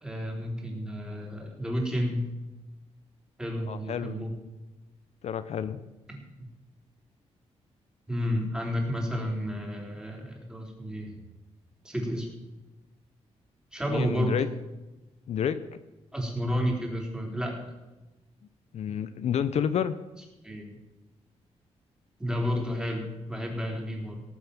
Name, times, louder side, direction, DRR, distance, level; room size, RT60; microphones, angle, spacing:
voice 1, 0.0-2.3 3.4-4.3 6.1-6.5 8.1-11.2 11.8-12.3 13.7-14.4 16.1-17.7 20.4-20.8 22.2-24.2, equal, 5° right, 0 dB, 3.9 m, -31 dB
voice 2, 3.7-4.2 5.2-5.8 13.9-14.5 15.3-15.8 18.7-19.9, left 8 dB, 70° left, 12 dB, 0.8 m, -29 dB
18.5 x 7.1 x 7.2 m, 1.1 s
cardioid pair, 115°, 12 cm